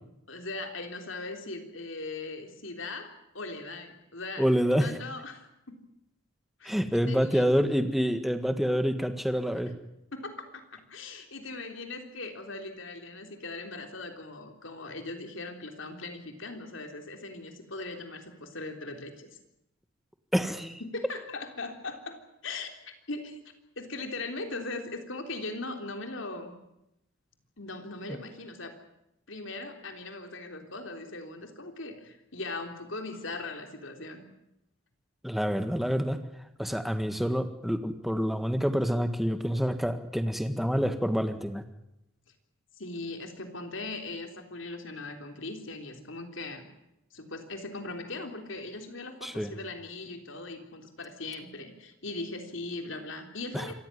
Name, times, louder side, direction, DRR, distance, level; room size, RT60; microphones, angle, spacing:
voice 1, 0.3-3.1 3.3-5.8 6.6-6.8 7.1-7.5 9.3-9.7 10.1-19.3 20.8-23.4 23.8-26.5 27.6-28.8 29.3-34.2 42.8-46.6 47.1-53.7, left 2 dB, 65° left, 5 dB, 3.6 m, -39 dB
voice 2, 4.4-4.9 6.6-9.7 20.3-20.8 35.2-36.2 36.6-41.6 49.2-49.5 53.5-53.7, equal, ahead, 9 dB, 1.7 m, -27 dB
26.5 x 15.0 x 10.0 m, 0.85 s
head